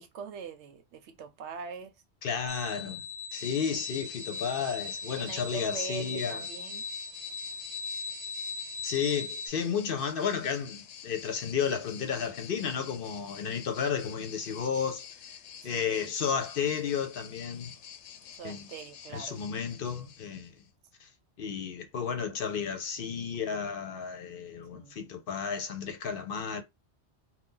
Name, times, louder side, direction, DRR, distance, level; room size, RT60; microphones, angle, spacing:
voice 1, 0.0-2.0 3.5-3.6 5.2-6.9 15.6-16.1 18.3-19.4 24.7-25.1, right 5 dB, 85° right, 0.9 m, -43 dB
voice 2, 2.2-3.0 3.3-6.4 8.8-15.0 15.6-17.7 18.4-18.6 19.1-20.5 21.0-21.1 21.4-26.6, left 7 dB, 60° left, 0.8 m, -32 dB
sound 1, 2.5-9.5, left 4 dB, 30° right, 0.9 m, -39 dB
sound 2, 3.3-20.7, left 8 dB, 85° left, 0.9 m, -48 dB
2.7 x 2.3 x 3.7 m
omnidirectional pair, 1.2 m